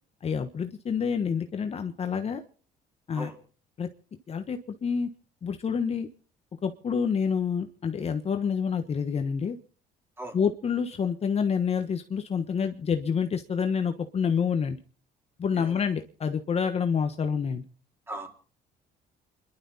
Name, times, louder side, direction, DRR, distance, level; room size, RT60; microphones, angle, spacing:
voice 1, 0.2-2.4 3.1-3.3 3.8-3.9 4.3-5.1 5.4-6.1 6.6-9.6 10.3-14.8 15.4-17.6, left 6 dB, 35° left, 7 dB, 1.2 m, -28 dB
voice 2, 3.1-3.4 10.2-10.4 15.5-15.8 18.1-18.3, right 1 dB, 15° right, 3 dB, 4.2 m, -38 dB
29.0 x 12.0 x 4.2 m, 0.42 s
cardioid pair, 110°, 17 cm